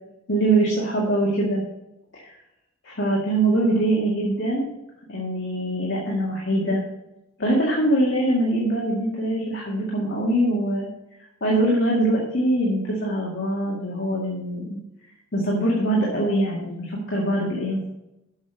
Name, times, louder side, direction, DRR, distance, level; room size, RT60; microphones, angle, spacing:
voice 1, 0.3-1.6 2.8-4.7 5.1-6.8 7.4-10.9 11.4-14.8 15.3-17.9, right 1 dB, 60° left, -4 dB, 2.0 m, -23 dB
7.9 x 6.6 x 7.0 m, 0.90 s
head